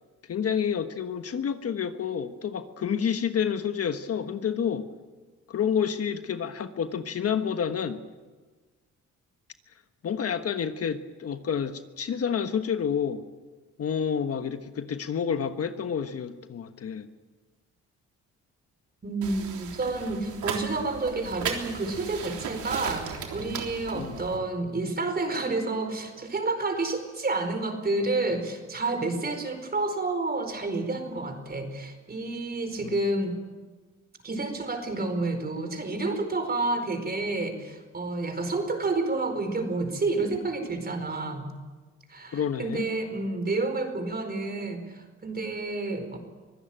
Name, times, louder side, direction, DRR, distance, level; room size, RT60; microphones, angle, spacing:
voice 1, 0.3-4.9 5.5-8.0 10.0-13.2 13.8-17.1 23.9-24.2 32.8-32.9 42.3-42.9, left 7 dB, 50° left, 1.3 m, -29 dB
voice 2, 19.0-33.4 34.2-41.5 42.1-46.2, right 3 dB, 30° right, 4.7 m, -29 dB
sound 1, 19.2-24.4, right 7 dB, 75° right, 3.6 m, -36 dB
24.5 x 16.0 x 9.0 m
cardioid pair, 90°, 30 cm